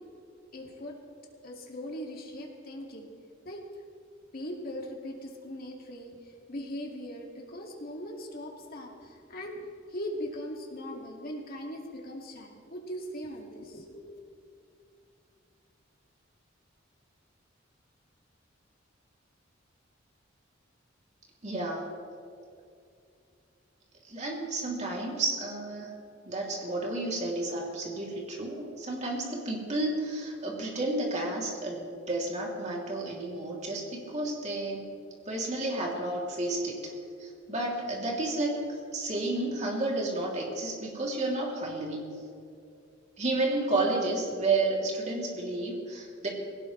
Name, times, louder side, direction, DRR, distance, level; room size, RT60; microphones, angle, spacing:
voice 1, 0.5-1.0 1.4-3.1 3.4-3.6 4.3-14.2, equal, 50° left, 0 dB, 2.3 m, -40 dB
voice 2, 21.4-21.9 24.1-25.9 26.2-34.9 35.2-36.9 37.2-38.6 38.9-42.1 43.2-46.3, right 2 dB, 35° right, -2 dB, 3.1 m, -31 dB
20.5 x 17.5 x 3.3 m, 2.5 s
head